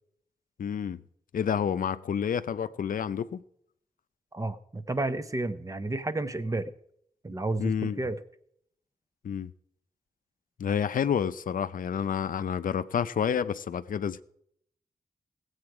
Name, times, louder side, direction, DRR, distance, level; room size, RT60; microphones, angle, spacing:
voice 1, 0.6-1.0 1.3-3.4 7.6-8.0 9.2-9.5 10.6-14.2, left 8 dB, 75° left, 0.5 m, -29 dB
voice 2, 4.3-6.7 7.2-8.2, right 2 dB, 25° right, 0.7 m, -31 dB
17.0 x 8.0 x 4.8 m
wide cardioid pair, 95°, 14 cm